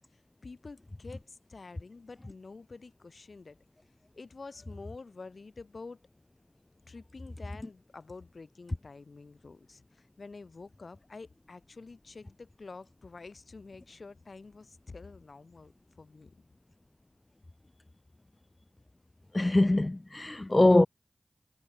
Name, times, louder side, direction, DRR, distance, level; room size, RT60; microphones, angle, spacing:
voice 1, 0.1-3.6 4.1-6.0 6.9-15.7 16.0-16.3, left 3 dB, 75° left, 7.8 m, -48 dB
voice 2, 19.3-20.9, left 2 dB, 35° left, 0.5 m, -23 dB
cardioid pair, 40°, 0 cm